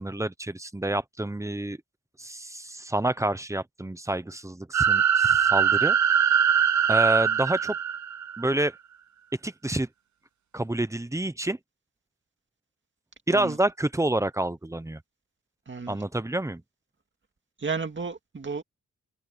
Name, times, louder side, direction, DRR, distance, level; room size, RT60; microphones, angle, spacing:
voice 1, 0.0-1.8 2.2-6.0 6.9-7.7 8.4-8.7 9.4-9.9 10.5-11.6 13.3-15.0 15.9-16.6, right 1 dB, 10° right, 0.8 m, -28 dB
sound 1, 4.7-8.5, right 8 dB, 60° right, 0.8 m, -22 dB
voice 2, 15.7-16.0 17.6-18.6, right 5 dB, 35° right, 2.1 m, -32 dB
wide cardioid pair, 160°, 33 cm